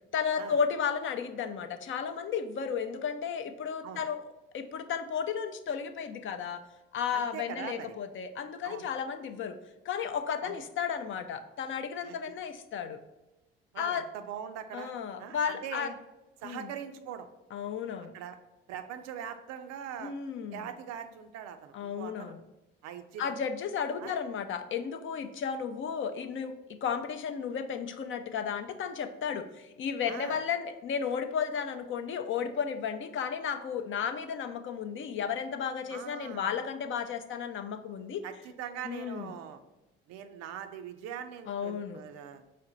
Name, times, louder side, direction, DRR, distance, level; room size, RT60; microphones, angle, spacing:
voice 1, 0.1-4.2 4.5-6.6 6.9-9.6 9.9-13.0 13.8-14.1 14.7-15.9 16.4-16.7 17.5-18.1 20.0-20.7 21.7-22.4 23.2-26.5 26.8-38.2 38.8-39.3 41.5-42.0, left 7 dB, 40° left, 9 dB, 0.5 m, -33 dB
voice 2, 7.1-8.0 8.6-8.9 10.4-10.6 12.0-12.3 13.7-14.9 15.2-15.9 16.4-17.3 18.1-18.4 18.7-20.1 20.5-22.3 22.8-23.3 24.0-24.2 30.1-30.4 35.9-36.5 38.2-39.6 40.1-42.4, right 9 dB, 60° right, 8 dB, 0.5 m, -42 dB
4.9 x 2.1 x 3.9 m, 0.98 s
hypercardioid pair, 55°, 31 cm